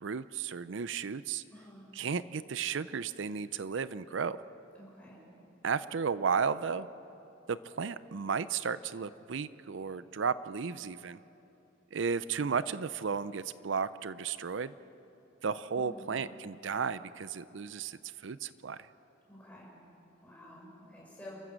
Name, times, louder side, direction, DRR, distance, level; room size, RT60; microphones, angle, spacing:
voice 1, 0.0-1.4 2.0-4.4 5.6-6.9 7.5-11.2 11.9-14.7 15.4-18.8, right 6 dB, 65° right, 15 dB, 0.5 m, -34 dB
voice 2, 1.5-1.9 4.7-5.2 15.7-16.1 19.2-19.7 20.2-21.4, left 1 dB, 5° left, -5 dB, 6.5 m, -50 dB
29.5 x 14.5 x 7.5 m, 2.9 s
head